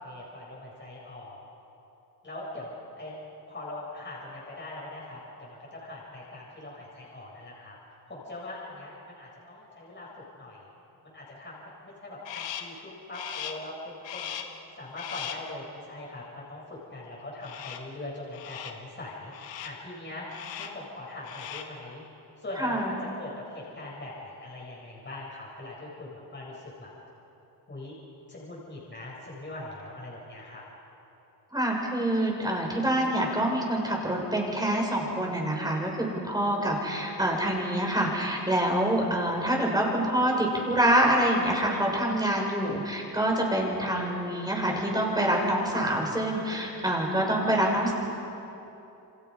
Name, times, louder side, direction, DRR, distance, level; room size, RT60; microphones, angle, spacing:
voice 1, 0.0-1.4 2.2-2.7 3.0-3.2 3.5-10.6 11.1-14.4 14.8-22.0 22.4-26.9 27.7-28.0 28.3-30.6, left 2 dB, 25° left, -5 dB, 7.9 m, -41 dB
Crow, 12.2-12.8 13.1-13.7 14.0-14.6 15.0-15.5 17.4-18.0 18.3-18.9 19.3-19.9 20.3-20.9 21.2-21.8, left 9 dB, 85° left, 1.7 m, -39 dB
voice 2, 22.6-22.9 31.5-47.9, right 1 dB, 10° right, -1 dB, 7.0 m, -26 dB
29.5 x 25.5 x 5.7 m, 2.9 s
cardioid pair, 85°, 44 cm